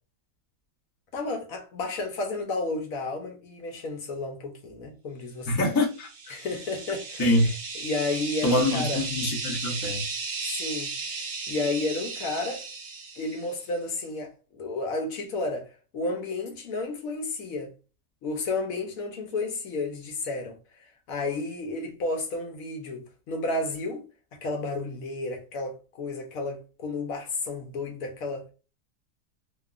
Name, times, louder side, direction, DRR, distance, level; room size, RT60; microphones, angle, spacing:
voice 1, 1.1-5.6 6.3-7.5 7.8-9.0 10.4-12.6 13.2-17.7 18.2-24.1 24.3-28.4, left 3 dB, 70° left, 1.0 m, -32 dB
voice 2, 5.5-6.3 7.2-7.5 8.4-10.0, left 1 dB, 35° left, 0.3 m, -25 dB
sound 1, 5.8-13.6, right 4 dB, 60° right, 0.7 m, -35 dB
2.8 x 2.3 x 2.3 m
omnidirectional pair, 1.7 m